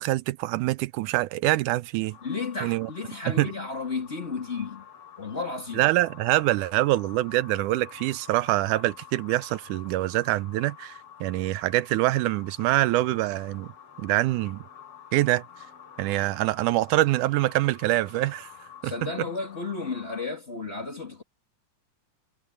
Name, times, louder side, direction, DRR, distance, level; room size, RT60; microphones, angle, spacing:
voice 1, 0.0-2.2 2.6-2.9 3.3-3.5 5.7-13.7 14.0-14.6 15.1-15.4 16.0-18.5 18.8-19.1, right 17 dB, 90° right, 2.1 m, -25 dB
sound 1, 2.1-20.3, left 9 dB, 45° left, 7.8 m, -49 dB
voice 2, 2.2-4.8 5.2-5.9 18.8-21.2, left 4 dB, 25° left, 1.8 m, -33 dB
omnidirectional pair, 3.5 m